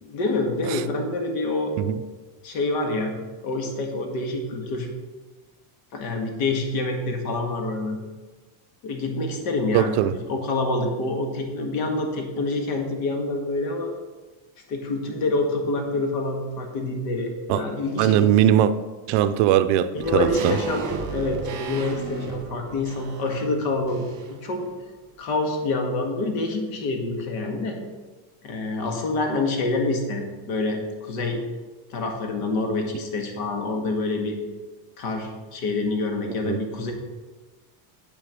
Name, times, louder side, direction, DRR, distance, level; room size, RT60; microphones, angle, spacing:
voice 1, 0.0-1.8 2.4-3.2 3.4-4.9 5.9-8.0 8.8-13.9 14.7-18.3 19.9-24.7 25.2-27.8 28.4-31.4 31.9-34.4 35.0-36.9, left 2 dB, 80° left, 2.0 m, -27 dB
voice 2, 9.7-10.2 17.5-17.6 18.0-18.7 19.1-20.6 36.4-36.6, right 11 dB, 60° right, 0.6 m, -20 dB
sound 1, 20.0-24.5 24.8-24.9, right 4 dB, 40° right, 1.9 m, -34 dB
8.5 x 6.5 x 5.9 m
cardioid pair, 160°, 47 cm